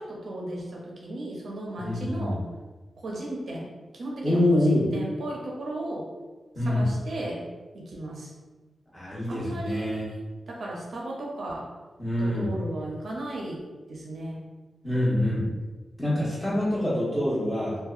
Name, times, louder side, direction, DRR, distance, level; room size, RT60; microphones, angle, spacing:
voice 1, 0.0-2.4 3.0-6.1 6.6-8.3 9.3-11.7 12.2-14.4, right 1 dB, 70° right, -3 dB, 0.5 m, -35 dB
voice 2, 1.8-2.4 4.2-4.8 6.5-6.8 8.9-10.0 12.0-12.5 14.8-15.5 16.0-17.8, left 1 dB, 15° left, -9 dB, 1.2 m, -25 dB
2.6 x 2.2 x 2.4 m, 1.2 s
wide cardioid pair, 100°, 0 cm